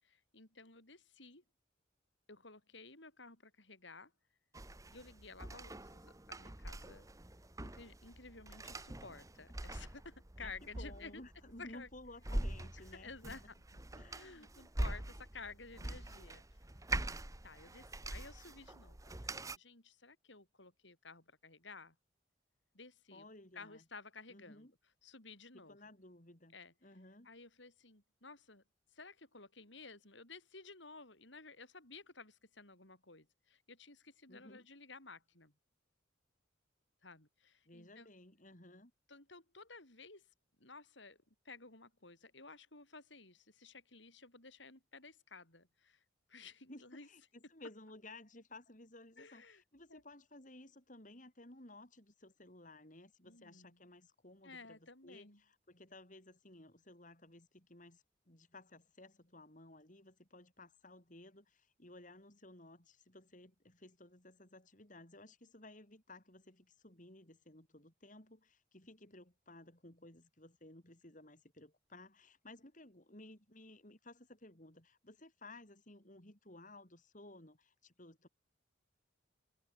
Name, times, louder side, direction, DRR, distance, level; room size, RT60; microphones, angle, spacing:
voice 1, 0.0-1.4 2.3-4.1 4.9-7.1 7.6-11.2 11.6-11.9 12.9-13.8 14.1-16.4 17.4-21.9 22.7-23.3 23.5-24.7 25.0-25.8 26.5-26.7 27.2-28.6 28.9-35.5 37.0-38.1 39.1-40.3 40.6-41.2 41.4-46.0 46.3-47.1 49.2-49.6 49.9-50.0 53.2-53.8 54.4-55.4, left 4 dB, 70° left, 6.7 m, -54 dB
sound 1, 4.5-19.6, right 1 dB, 15° right, 1.2 m, -44 dB
voice 2, 10.4-13.5 14.0-14.5 23.1-23.8 24.3-24.7 25.5-26.6 26.8-27.3 34.3-34.7 37.7-38.9 46.7-78.3, left 2 dB, 40° left, 3.9 m, -57 dB
head